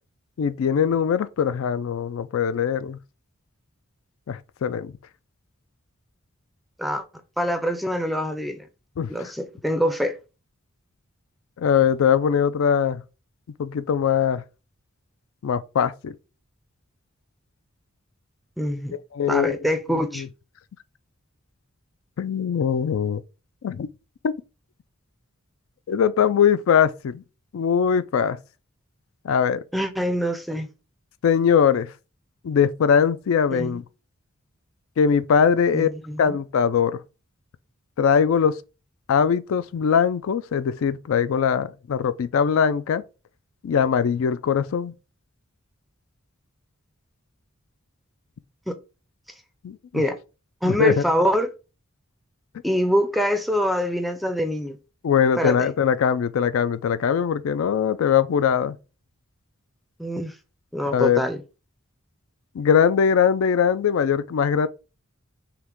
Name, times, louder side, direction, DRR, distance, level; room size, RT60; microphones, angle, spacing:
voice 1, 0.4-3.0 4.3-4.9 9.0-9.3 11.6-13.0 13.6-14.4 15.4-16.1 19.1-19.6 20.1-20.3 22.2-23.2 23.6-23.9 24.2-24.3 25.9-27.2 27.5-28.4 29.2-29.6 31.2-31.9 32.4-33.8 35.0-35.9 36.2-37.0 38.0-38.6 39.1-43.0 43.6-44.9 49.6-50.0 50.7-51.0 55.0-58.8 60.9-61.2 62.6-64.7, left 7 dB, 65° left, 0.3 m, -21 dB
voice 2, 7.4-8.7 9.1-10.2 18.6-18.9 19.3-20.2 29.7-30.7 33.5-33.8 35.7-36.4 48.7-48.8 49.9-50.2 50.6-51.5 52.6-54.8 55.4-55.7 60.0-60.3 60.7-61.4, equal, ahead, 0.4 m, -24 dB
5.7 x 2.1 x 3.6 m
head